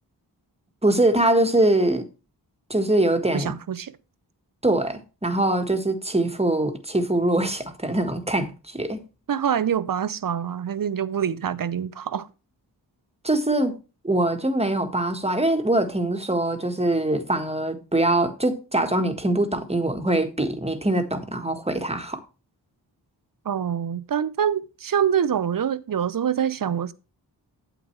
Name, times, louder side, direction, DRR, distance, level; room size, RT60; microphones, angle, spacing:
voice 1, 0.8-2.0 2.7-3.5 4.6-9.0 13.2-13.8 14.0-22.2, right 1 dB, 15° right, 1.5 m, -23 dB
voice 2, 3.3-4.0 9.3-12.3 23.4-26.9, right 8 dB, 50° right, 0.7 m, -25 dB
8.9 x 7.8 x 3.2 m
cardioid pair, 45°, 42 cm